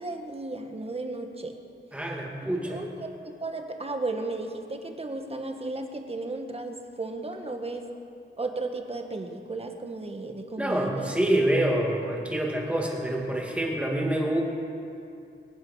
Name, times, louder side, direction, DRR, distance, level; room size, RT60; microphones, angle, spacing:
voice 1, 0.0-1.6 2.4-7.9 8.4-11.2, right 2 dB, 30° right, 4 dB, 1.4 m, -34 dB
voice 2, 1.9-2.8 10.6-14.4, right 1 dB, 5° right, -2 dB, 2.6 m, -26 dB
25.0 x 9.5 x 5.6 m, 2.5 s
wide cardioid pair, 120°, 21 cm